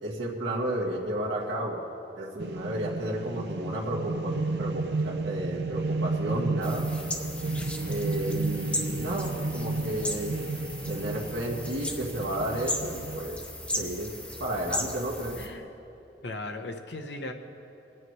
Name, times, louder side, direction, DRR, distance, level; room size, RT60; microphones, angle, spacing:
voice 1, 0.0-1.8 2.2-6.9 7.9-10.4 10.9-13.4 13.8-15.4, right 1 dB, 90° right, -4 dB, 1.7 m, -32 dB
sound 1, 2.4-13.2, right 3 dB, 60° right, 0.5 m, -32 dB
voice 2, 3.0-3.6 15.3-15.7 16.2-17.3, left 2 dB, 70° left, 5 dB, 0.9 m, -39 dB
sound 2, 6.6-15.5, left 1 dB, 5° left, 0.7 m, -36 dB
26.0 x 9.0 x 3.2 m, 2.9 s
head